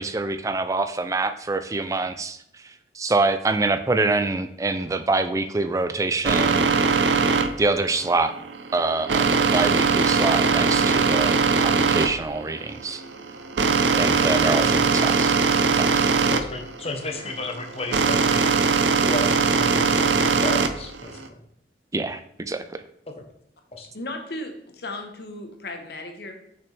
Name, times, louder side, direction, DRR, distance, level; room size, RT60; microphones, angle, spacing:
voice 1, 0.0-2.4 2.6-6.7 7.6-8.3 8.7-13.0 13.9-15.3 15.8-15.9 21.9-22.8, right 3 dB, 20° right, 11 dB, 0.3 m, -25 dB
sound 1, 6.2-21.3, right 5 dB, 90° right, 0.5 m, -21 dB
Brass instrument, 10.6-18.4, right 1 dB, 75° left, 1.7 m, -49 dB
voice 2, 14.5-14.8 16.3-18.5 19.0-21.4 23.1-23.3 23.7-23.9, left 2 dB, 35° left, 4 dB, 0.9 m, -33 dB
voice 3, 23.9-26.3, left 2 dB, 60° left, 5 dB, 1.1 m, -35 dB
6.1 x 5.9 x 3.3 m, 0.74 s
head